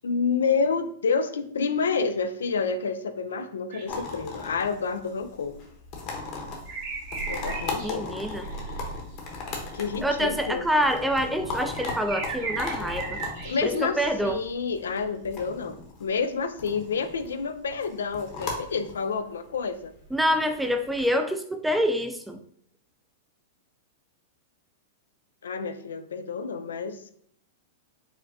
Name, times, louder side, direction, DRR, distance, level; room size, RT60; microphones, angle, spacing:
voice 1, 0.0-5.6 7.3-8.1 9.7-10.7 13.4-19.9 25.4-27.1, left 5 dB, 85° left, 9 dB, 0.3 m, -29 dB
sound 1, 3.7-4.0 6.7-7.9 8.2-8.9 11.7-13.9, right 4 dB, 60° right, 1.0 m, -35 dB
sound 2, 3.9-21.0, left 3 dB, 45° left, 0.9 m, -38 dB
voice 2, 7.8-8.5 10.0-13.2 13.6-14.4 20.1-22.4, equal, 5° right, 6 dB, 0.4 m, -26 dB
4.7 x 2.1 x 2.7 m, 0.64 s
hypercardioid pair, 120°, 0 cm